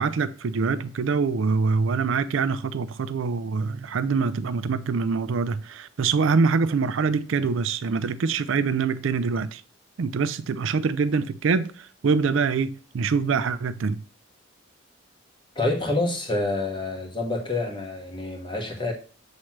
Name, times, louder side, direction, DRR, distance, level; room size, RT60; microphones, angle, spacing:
voice 1, 0.0-9.6 10.0-14.0, right 5 dB, 65° right, 0.4 m, -24 dB
voice 2, 15.5-18.9, left 2 dB, 20° left, 1.2 m, -27 dB
7.4 x 3.2 x 5.9 m
head